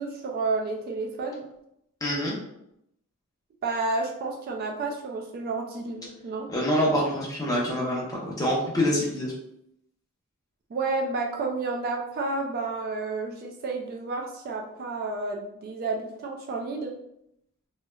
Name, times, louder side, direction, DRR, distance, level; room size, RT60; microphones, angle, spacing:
voice 1, 0.0-1.5 3.6-6.5 10.7-17.0, right 3 dB, 45° right, 1 dB, 0.3 m, -31 dB
voice 2, 2.0-2.4 6.5-9.3, equal, 15° left, -4 dB, 0.7 m, -26 dB
3.0 x 2.0 x 2.2 m, 0.79 s
head